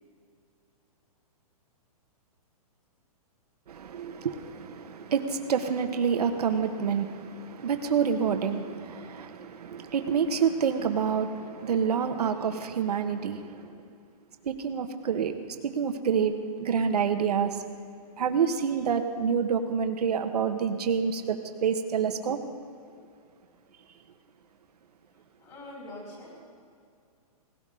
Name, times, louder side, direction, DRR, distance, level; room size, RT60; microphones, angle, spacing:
voice 1, 3.7-13.8 14.4-15.3 15.6-16.3 16.6-17.6 18.2-22.4, right 7 dB, 85° right, 7 dB, 1.3 m, -28 dB
voice 2, 25.1-26.6, left 1 dB, 20° left, -4 dB, 4.7 m, -45 dB
18.0 x 16.5 x 3.8 m, 2.4 s
hypercardioid pair, 165°, 19 cm